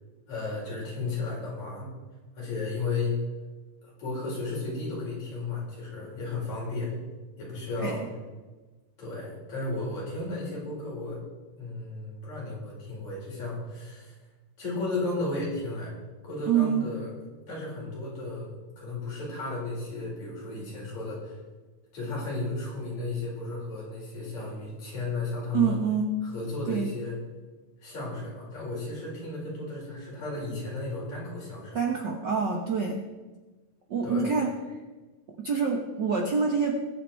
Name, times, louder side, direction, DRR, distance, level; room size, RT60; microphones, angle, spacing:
voice 1, 0.3-1.9 2.4-3.1 3.8-6.9 7.4-8.0 9.0-11.2 11.6-14.2 14.6-15.9 16.2-17.1 17.5-21.4 21.9-25.8 26.2-27.2 27.8-31.8 34.0-34.3, left 3 dB, 65° left, -5 dB, 6.3 m, -34 dB
voice 2, 16.5-16.8 25.5-26.2 26.7-26.9 31.7-33.0 33.9-34.5 35.4-36.7, right 6 dB, 60° right, 2 dB, 1.2 m, -26 dB
21.5 x 8.0 x 4.5 m, 1.3 s
omnidirectional pair, 3.4 m